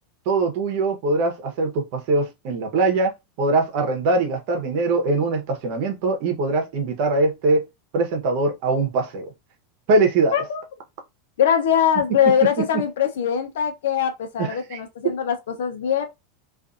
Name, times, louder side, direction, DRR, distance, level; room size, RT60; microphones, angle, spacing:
voice 1, 0.3-3.1 3.4-7.6 7.9-9.3 9.9-10.4 14.4-14.8 15.0-15.1, right 3 dB, 55° right, 0.9 m, -22 dB
voice 2, 10.3-10.6 11.4-16.1, left 8 dB, 85° left, 0.7 m, -22 dB
2.5 x 2.5 x 2.4 m
supercardioid pair, 140°, 0 cm